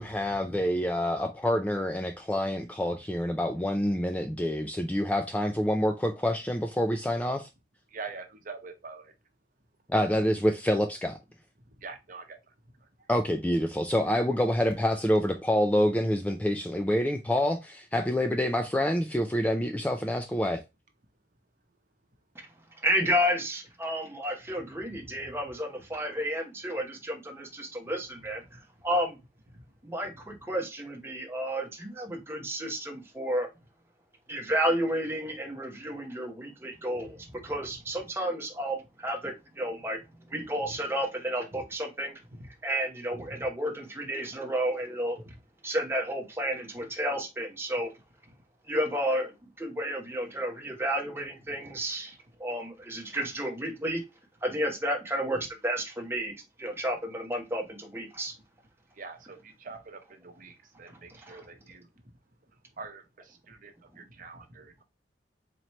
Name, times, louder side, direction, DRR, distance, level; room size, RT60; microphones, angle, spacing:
voice 1, 0.0-7.5 9.9-11.2 13.1-20.6, equal, 10° left, 0.3 m, -27 dB
voice 2, 7.9-9.0 11.8-12.4 59.0-59.4 59.6-60.0 60.2-61.8 62.8-63.0 63.5-63.7 64.2-64.8, right 4 dB, 50° right, 0.9 m, -43 dB
voice 3, 22.8-28.4 28.8-29.2 29.8-33.5 34.3-40.0 40.3-42.1 42.6-45.2 45.6-47.9 48.7-54.0 54.4-58.3 61.2-61.4 63.9-64.0, equal, 15° right, 1.0 m, -31 dB
4.3 x 3.0 x 2.9 m
head